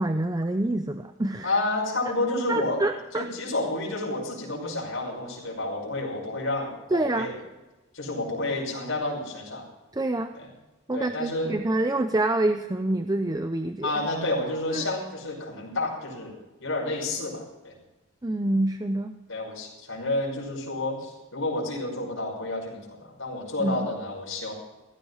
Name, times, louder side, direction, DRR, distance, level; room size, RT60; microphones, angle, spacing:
voice 1, 0.0-1.5 2.5-3.3 6.9-7.3 9.9-10.4 10.9-14.0 14.7-14.8 18.2-19.2 23.6-23.9, right 2 dB, 20° right, 8 dB, 0.6 m, -26 dB
voice 2, 1.4-2.8 3.1-7.4 7.9-9.6 10.3-10.5 10.9-11.6 13.8-16.3 16.6-17.8 19.3-24.5, left 2 dB, 65° left, -2 dB, 5.7 m, -30 dB
17.0 x 15.0 x 4.1 m, 1.1 s
head